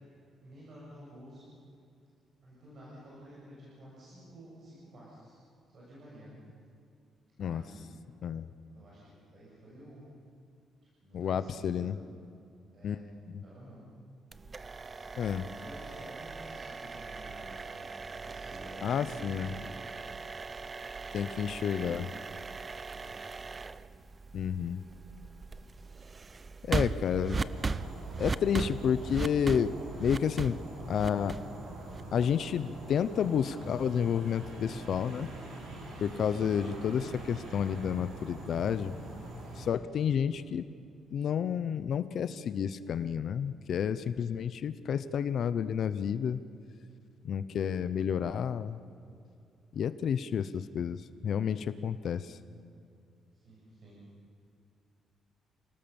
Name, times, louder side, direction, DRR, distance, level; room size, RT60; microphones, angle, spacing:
voice 1, 0.4-1.4 2.4-5.4 5.7-6.3 7.4-7.9 8.7-10.0 11.0-11.9 12.7-13.1 13.4-13.9 15.4-19.7 21.4-22.1 22.8-23.3 36.6-36.9 53.3-54.0, right 1 dB, 40° right, -7 dB, 7.1 m, -51 dB
voice 2, 11.1-11.9 12.8-13.0 13.3-13.4 15.2-15.4 18.8-19.5 21.1-22.1 24.3-24.8 26.6-27.4 28.2-30.6 30.9-31.4 32.1-35.3 36.0-38.9 39.6-40.6 41.1-46.4 47.2-48.8 49.7-52.4, left 8 dB, 50° left, 13 dB, 0.7 m, -30 dB
sound 1, 14.3-32.2, right 4 dB, 20° right, 0.5 m, -39 dB
sound 2, 27.4-39.7, right 2 dB, 85° right, 6.0 m, -44 dB
28.5 x 18.5 x 7.1 m, 2.4 s
cardioid pair, 175°, 0 cm